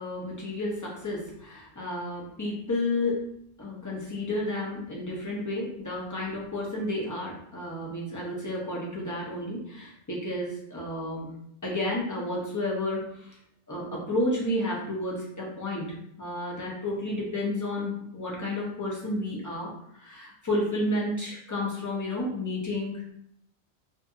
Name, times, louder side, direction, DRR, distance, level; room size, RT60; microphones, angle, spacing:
voice 1, 0.0-3.2 3.6-11.3 11.6-13.3 13.7-23.1, left 1 dB, 25° left, -4 dB, 0.4 m, -31 dB
2.6 x 2.6 x 2.3 m, 0.71 s
omnidirectional pair, 1.2 m